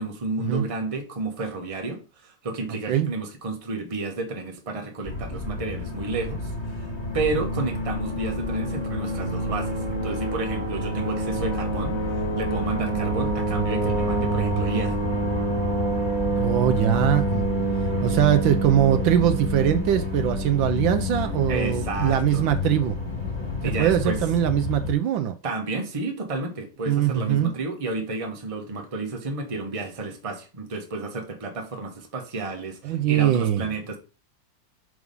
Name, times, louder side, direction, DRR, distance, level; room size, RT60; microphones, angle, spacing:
voice 1, 0.0-6.5 6.8-6.9 7.1-12.0 12.4-15.0 21.5-22.5 23.6-24.2 25.4-34.0, right 3 dB, 20° right, 0.9 m, -31 dB
sound 1, 5.0-24.9, equal, 15° left, 2.0 m, -27 dB
voice 2, 16.4-17.5 18.0-23.0 23.6-25.3 26.9-27.5 32.8-33.7, right 10 dB, 75° right, 1.3 m, -22 dB
4.9 x 4.8 x 5.3 m
omnidirectional pair, 2.3 m